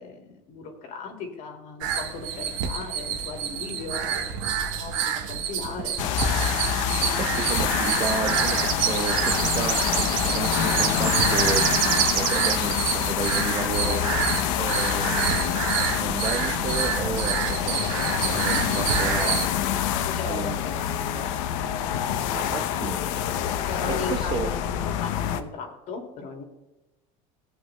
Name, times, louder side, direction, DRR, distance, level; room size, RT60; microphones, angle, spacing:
voice 1, 0.0-5.9 19.4-19.6 20.0-21.7 23.7-24.4 24.7-26.4, left 4 dB, 55° left, 2 dB, 2.4 m, -37 dB
sound 1, 1.8-19.5, right 8 dB, 80° right, 1.4 m, -28 dB
sound 2, 6.0-25.4, left 10 dB, 80° left, 0.7 m, -26 dB
sound 3, 6.3-6.4 7.3-7.5 7.8-12.8 13.0-13.1 13.5-13.6 14.4-14.5 15.0-15.2, right 10 dB, 60° right, 1.3 m, -28 dB
voice 2, 7.0-14.1 14.6-15.4 15.7-19.5 20.3-20.6 22.3-23.0 23.9-24.5, right 5 dB, 30° right, 7 dB, 1.0 m, -32 dB
17.0 x 8.5 x 2.2 m, 1.0 s
supercardioid pair, 120°, 16 cm